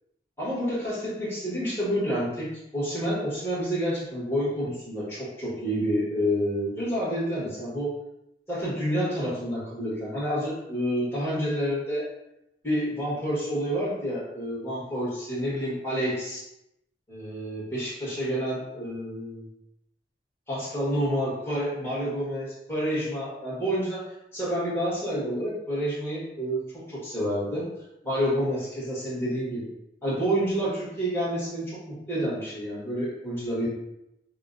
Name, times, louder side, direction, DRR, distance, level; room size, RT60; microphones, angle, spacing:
voice 1, 0.4-7.9 8.5-12.1 12.6-16.4 17.1-19.4 20.5-24.0 24.3-27.7 28.0-29.7 30.0-33.7, equal, 15° left, -8 dB, 1.3 m, -29 dB
5.4 x 2.1 x 2.5 m, 0.86 s
head